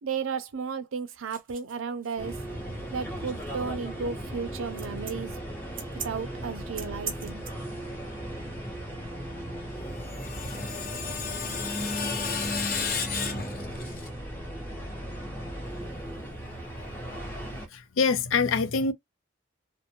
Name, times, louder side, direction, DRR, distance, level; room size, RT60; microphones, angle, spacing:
voice 1, 0.0-2.4 2.9-5.3 6.0-7.4, right 5 dB, 90° right, 0.5 m, -34 dB
sound 1, 1.3-7.5, right 7 dB, 45° right, 0.8 m, -42 dB
sound 2, 2.2-17.7, equal, 10° left, 0.8 m, -36 dB
Screech, 9.8-14.1, left 6 dB, 45° left, 0.6 m, -33 dB
voice 2, 17.5-18.9, left 4 dB, 85° left, 0.5 m, -25 dB
2.5 x 2.1 x 2.8 m
head